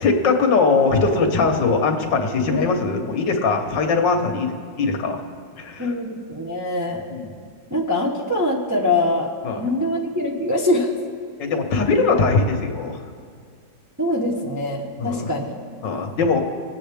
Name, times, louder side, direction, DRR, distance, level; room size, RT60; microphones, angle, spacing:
voice 1, 0.0-4.5 4.8-5.2 5.6-5.9 7.1-7.3 9.4-9.6 11.4-13.0 15.0-15.3 15.8-16.4, left 4 dB, 75° left, 4 dB, 1.8 m, -20 dB
voice 2, 5.8-7.0 7.7-9.3 9.6-10.9 14.0-15.5, left 1 dB, 15° right, -2 dB, 0.6 m, -23 dB
21.5 x 8.6 x 3.4 m, 2.1 s
omnidirectional pair, 2.0 m